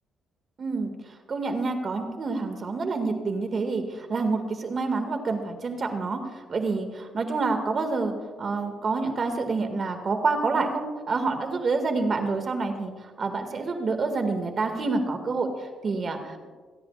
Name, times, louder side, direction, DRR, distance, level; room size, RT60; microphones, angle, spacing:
voice 1, 0.6-0.9 1.3-16.5, right 3 dB, 45° right, 5 dB, 2.0 m, -28 dB
28.5 x 10.5 x 2.5 m, 1.5 s
cardioid pair, 90°, 0 cm